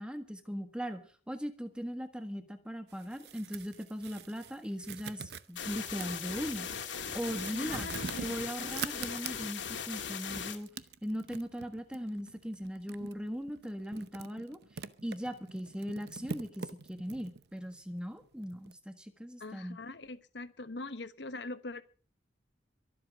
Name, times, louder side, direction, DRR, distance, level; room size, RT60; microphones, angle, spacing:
voice 1, 0.0-6.7 7.1-7.9 8.2-10.7 11.0-14.6 15.0-19.8, equal, 5° right, 7 dB, 1.6 m, -39 dB
sound 1, 2.9-9.7 10.2-18.7, right 5 dB, 60° right, 0.8 m, -45 dB
sound 2, 5.6-10.6, left 7 dB, 85° left, 2.4 m, -39 dB
voice 2, 7.5-8.3 19.4-21.8, left 2 dB, 70° left, 12 dB, 1.2 m, -42 dB
23.0 x 7.8 x 6.1 m, 0.42 s
head